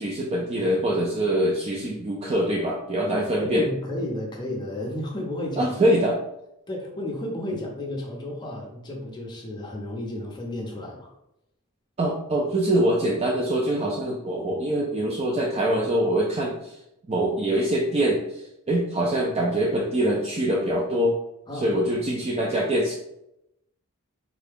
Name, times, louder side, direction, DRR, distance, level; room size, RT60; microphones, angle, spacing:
voice 1, 0.0-3.6 5.6-6.1 12.0-16.8 17.1-21.1 21.5-22.9, right 1 dB, 30° right, -2 dB, 0.4 m, -24 dB
voice 2, 3.1-5.8 6.7-11.1 21.5-21.7, left 1 dB, 20° left, -1 dB, 0.7 m, -32 dB
3.7 x 2.2 x 3.4 m, 0.82 s
head